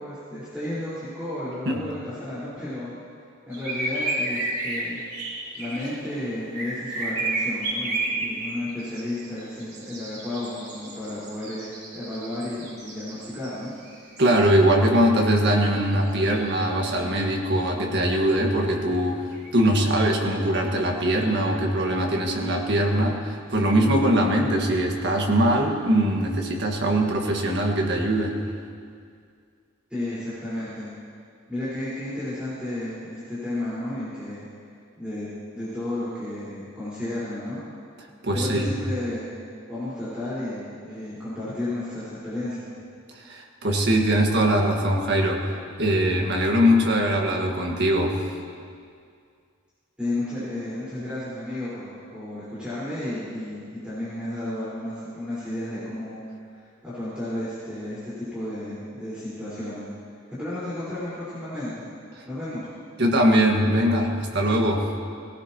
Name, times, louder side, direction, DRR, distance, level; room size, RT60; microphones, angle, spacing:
voice 1, 0.0-2.9 3.4-5.0 5.6-13.7 29.9-30.9 31.5-34.4 35.0-35.3 35.5-37.6 38.3-39.3 39.7-42.7 50.0-56.2 56.5-59.9 60.4-61.9 62.3-62.7, left 1 dB, 5° right, -13 dB, 4.6 m, -32 dB
sound 1, 3.5-6.0 6.5-14.7 15.0-15.6 15.9-17.6 19.3-19.5 20.8-21.3, right 2 dB, 85° right, 4.5 m, -32 dB
voice 2, 14.2-19.2 19.5-28.4 38.2-38.7 43.2-45.4 45.8-48.2 63.0-64.9, equal, 55° right, 0 dB, 1.7 m, -21 dB
19.0 x 17.0 x 3.0 m, 2.2 s
head